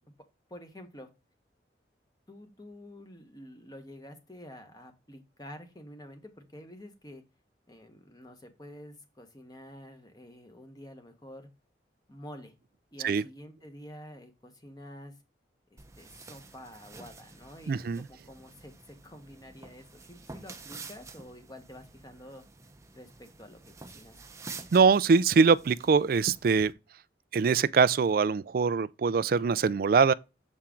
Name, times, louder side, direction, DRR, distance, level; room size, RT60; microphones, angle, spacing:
voice 1, 0.5-1.1 2.3-7.2 7.7-11.5 12.1-12.5 12.9-15.2 15.7-22.4 22.9-24.2, left 1 dB, 20° left, 1.2 m, -48 dB
sound 1, 15.8-26.7, right 3 dB, 15° right, 0.7 m, -49 dB
voice 2, 17.7-18.0 24.7-26.7 27.3-30.1, right 5 dB, 50° right, 0.3 m, -23 dB
7.1 x 4.3 x 3.7 m
head